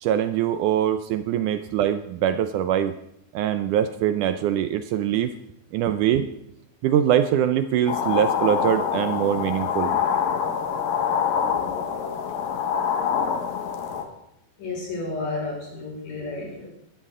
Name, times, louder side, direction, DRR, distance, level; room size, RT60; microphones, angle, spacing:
voice 1, 0.0-2.9 3.3-5.3 5.7-6.3 6.8-9.9, right 10 dB, 75° right, 10 dB, 1.9 m, -23 dB
sound 1, 7.9-14.0, left 7 dB, 85° left, 3.2 m, -25 dB
voice 2, 14.6-16.7, left 3 dB, 70° left, -3 dB, 6.9 m, -31 dB
20.0 x 12.5 x 3.7 m, 0.78 s
omnidirectional pair, 4.0 m